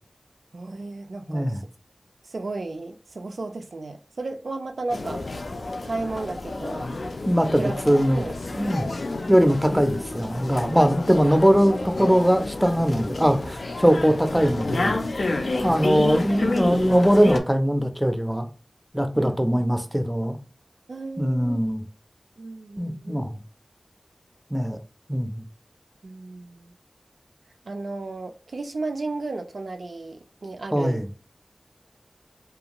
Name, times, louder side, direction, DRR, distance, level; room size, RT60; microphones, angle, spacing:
voice 1, 0.5-1.6 2.2-5.2 5.8-6.9 7.6-7.8 8.1-8.4 16.0-16.4 19.1-19.6 20.9-21.6 22.4-23.2 26.0-26.7 27.6-31.0, right 2 dB, 90° right, 0.3 m, -34 dB
voice 2, 1.3-1.6 7.3-8.2 8.6-8.9 9.3-15.0 15.6-18.5 18.9-20.4 21.2-21.8 22.8-23.4 24.5-24.8 25.1-25.4 30.7-31.1, equal, ahead, 0.4 m, -21 dB
dmv - 'now serving', 4.9-17.4, left 2 dB, 85° left, 0.3 m, -30 dB
2.4 x 2.2 x 2.9 m
wide cardioid pair, 60°, 0 cm